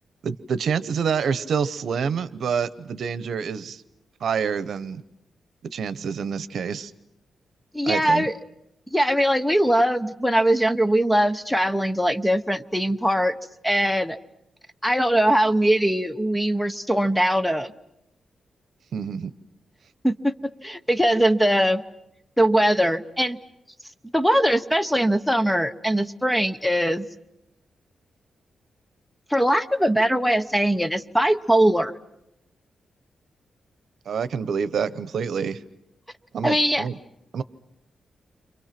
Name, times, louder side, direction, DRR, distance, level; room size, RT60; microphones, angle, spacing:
voice 1, 0.2-3.8 4.2-5.0 5.7-6.9 7.8-8.3 18.9-19.3 34.1-35.6 36.3-37.0 37.3-37.4, right 6 dB, 65° right, 14 dB, 1.0 m, -27 dB
voice 2, 7.7-8.4 8.9-13.3 13.6-14.2 14.8-17.7 20.0-20.3 20.6-21.8 22.4-23.4 24.1-27.1 29.3-31.9 36.4-36.8, right 1 dB, ahead, 10 dB, 0.9 m, -21 dB
30.0 x 26.5 x 6.0 m, 0.85 s
wide cardioid pair, 140°, 0 cm